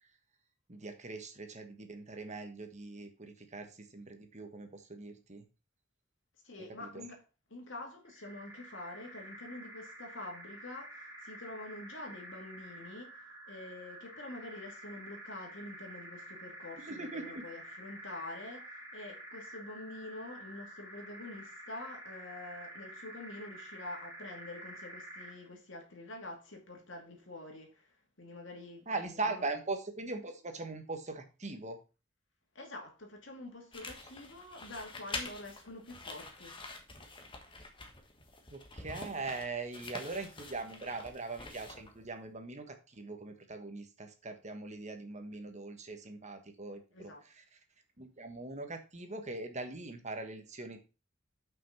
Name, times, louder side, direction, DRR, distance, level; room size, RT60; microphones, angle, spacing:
voice 1, 0.7-5.4 6.9-7.0 16.8-17.4 28.9-31.8 38.5-47.1 48.0-50.8, right 3 dB, 35° right, 1.4 m, -41 dB
voice 2, 6.4-7.2 7.5-29.5 32.5-36.6 46.9-47.2, left 2 dB, 70° left, 2.4 m, -47 dB
sound 1, 8.1-25.5, right 1 dB, 15° right, 3.1 m, -49 dB
sound 2, 33.7-42.1, left 3 dB, 25° left, 1.5 m, -46 dB
6.4 x 5.8 x 5.7 m
head